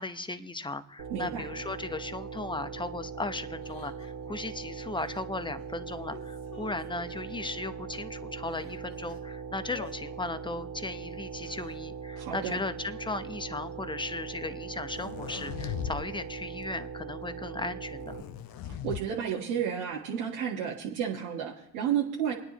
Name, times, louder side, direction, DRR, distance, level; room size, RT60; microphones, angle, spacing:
voice 1, 0.0-18.2, left 2 dB, 10° left, 10 dB, 0.9 m, -36 dB
sound 1, 1.0-18.2, right 5 dB, 55° right, 1.7 m, -41 dB
voice 2, 1.1-1.4 12.2-12.6 18.7-22.3, right 8 dB, 85° right, -5 dB, 1.7 m, -32 dB
Crying sobbing, 1.8-1.9 2.4-2.6 3.6-4.2 4.9-5.2 5.6-7.3 7.9-8.0 8.3-9.2 9.7-10.0 11.2-11.8, left 6 dB, 90° left, 2.3 m, -50 dB
sound 2, 14.9-16.0 16.4-16.7 18.0-19.0, left 9 dB, 60° left, 0.9 m, -38 dB
27.5 x 10.0 x 3.0 m, 0.77 s
supercardioid pair, 70°, 40 cm